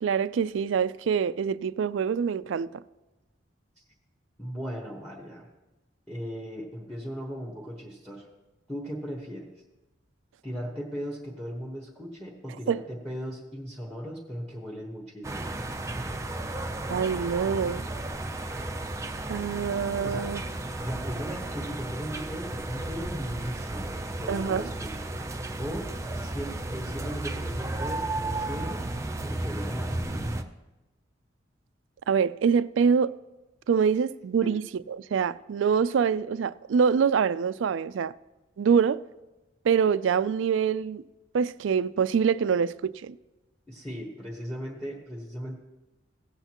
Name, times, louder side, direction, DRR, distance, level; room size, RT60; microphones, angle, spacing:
voice 1, 0.0-2.8 12.7-12.8 16.9-17.8 19.3-20.4 24.3-24.6 32.1-33.1 33.7-38.1 38.6-39.0 39.6-41.0 41.3-43.2, right 6 dB, 80° right, 0.3 m, -25 dB
voice 2, 4.4-5.5 6.1-8.3 8.7-9.5 10.4-16.1 20.0-20.3 20.8-25.1 25.6-28.9 29.2-30.3 34.4-34.5 43.7-45.6, equal, ahead, 1.1 m, -37 dB
sound 1, 15.2-30.4, right 2 dB, 15° right, 0.5 m, -34 dB
17.0 x 8.0 x 3.0 m
head